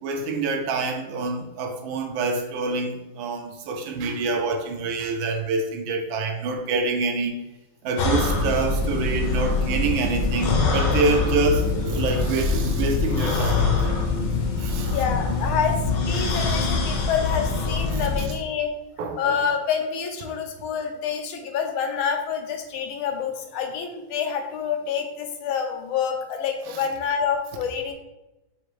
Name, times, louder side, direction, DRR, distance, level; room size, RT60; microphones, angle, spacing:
voice 1, 0.0-7.3 7.8-14.0 14.6-15.0 17.9-18.0 19.0-19.4 26.7-26.8, right 3 dB, 75° right, 4 dB, 1.3 m, -26 dB
sound 1, 8.0-18.3, left 4 dB, 70° left, 1.3 m, -24 dB
voice 2, 14.9-18.7 19.2-27.9, left 7 dB, 85° left, 4 dB, 1.4 m, -27 dB
4.9 x 2.6 x 3.1 m, 0.97 s
omnidirectional pair, 2.3 m